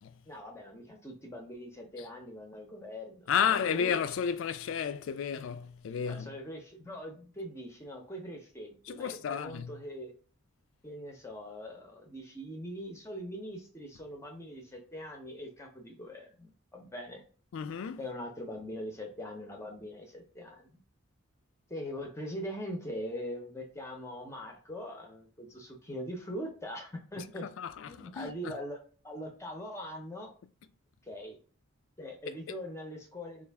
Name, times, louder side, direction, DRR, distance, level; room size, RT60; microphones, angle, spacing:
voice 1, 0.3-4.0 6.1-10.1 10.8-17.2 18.0-20.8 21.7-27.4 27.9-28.8 29.0-30.3 31.0-31.4 32.0-33.4, equal, 15° left, 0.5 m, -42 dB
voice 2, 3.3-6.3 8.9-9.7 17.5-18.0 27.6-28.3, left 7 dB, 65° left, 0.3 m, -32 dB
3.3 x 2.4 x 3.4 m
head